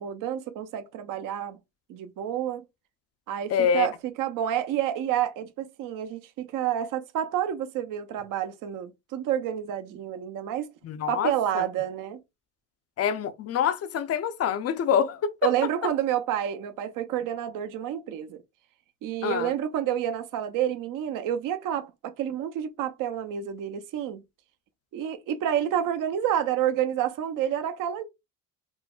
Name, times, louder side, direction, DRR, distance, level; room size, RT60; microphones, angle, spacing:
voice 1, 0.0-1.6 1.9-2.6 3.3-10.7 11.1-12.2 15.4-18.4 19.0-24.2 24.9-28.0, right 10 dB, 55° right, 0.6 m, -29 dB
voice 2, 3.5-3.9 10.8-11.7 13.0-15.3 19.2-19.5, left 8 dB, 40° left, 0.5 m, -26 dB
3.7 x 2.0 x 2.3 m
supercardioid pair, 80°, 39 cm